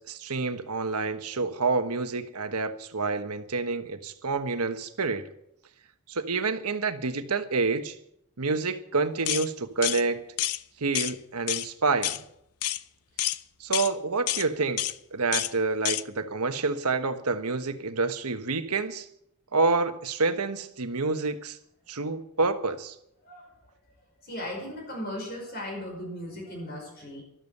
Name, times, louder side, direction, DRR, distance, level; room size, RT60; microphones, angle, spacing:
voice 1, 0.1-5.3 6.1-7.9 8.4-10.3 10.8-12.2 13.6-14.8 15.1-19.1 19.5-21.6 21.9-22.9, right 4 dB, 90° right, 9 dB, 1.3 m, -28 dB
sound 1, 9.3-9.5 9.8-10.0 10.4-10.6 10.9-11.1 11.5-11.7 12.0-12.2 12.6-12.8 13.2-13.4 13.7-13.9 14.3-14.5 14.8-14.9 15.3-15.5 15.8-16.0, left 14 dB, 90° left, 0.6 m, -28 dB
voice 2, 24.2-27.2, left 1 dB, 45° left, 0 dB, 5.1 m, -37 dB
13.0 x 12.5 x 6.7 m, 0.74 s
head